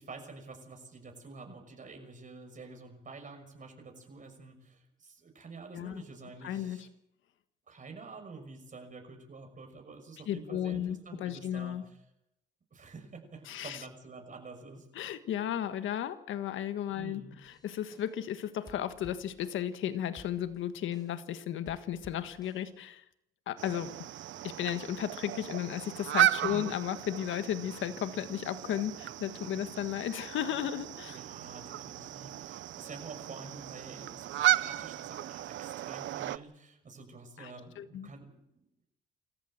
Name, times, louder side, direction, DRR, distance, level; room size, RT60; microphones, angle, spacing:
voice 1, 0.0-6.9 7.7-12.0 12.7-14.9 16.9-17.4 26.4-26.7 31.0-38.9, right 4 dB, 40° right, 3 dB, 6.3 m, -48 dB
voice 2, 6.4-6.9 10.3-11.8 13.5-13.8 14.9-23.0 23.5-23.9 24.4-31.2 37.4-38.1, left 10 dB, 80° left, 11 dB, 1.5 m, -34 dB
sound 1, 17.4-18.4 18.7-19.9 20.2-21.3 21.7-22.8, left 1 dB, 20° left, 6.1 m, -57 dB
sound 2, 23.6-36.4, right 12 dB, 75° right, 0.8 m, -34 dB
27.0 x 14.5 x 7.6 m, 0.83 s
cardioid pair, 90°, 20 cm